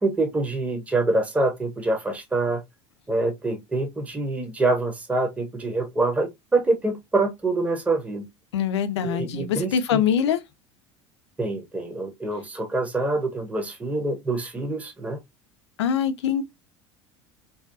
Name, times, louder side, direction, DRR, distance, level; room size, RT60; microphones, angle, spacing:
voice 1, 0.0-2.6 3.1-8.3 9.0-10.0 11.4-15.2, right 2 dB, 10° right, 0.6 m, -25 dB
voice 2, 8.5-10.4 15.8-16.4, left 8 dB, 70° left, 0.4 m, -23 dB
2.6 x 2.2 x 2.4 m
figure-of-eight pair, 70°, 15 cm